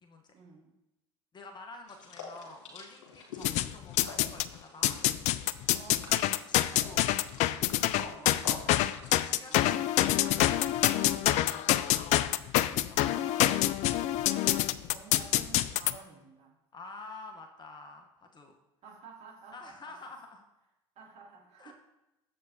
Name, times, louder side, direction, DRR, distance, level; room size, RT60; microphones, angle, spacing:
voice 1, 0.3-0.7 3.4-3.8 5.7-6.1 7.9-8.3 9.5-9.9 11.0-11.4 13.0-13.7 14.9-16.6 18.8-19.9 21.0-21.7, right 4 dB, 45° right, -3 dB, 2.8 m, -52 dB
voice 2, 1.3-5.0 6.5-7.1 7.9-8.6 9.2-10.2 10.8-11.1 13.1-14.9 16.7-18.5 19.5-20.4 21.6-21.7, left 3 dB, 30° left, 3 dB, 1.1 m, -49 dB
sound 1, 1.9-11.0, left 4 dB, 75° left, 2.0 m, -48 dB
sound 2, 3.4-4.5 4.8-15.9, left 14 dB, 50° left, 0.4 m, -26 dB
9.7 x 7.6 x 2.8 m, 0.93 s
figure-of-eight pair, 70°, 15 cm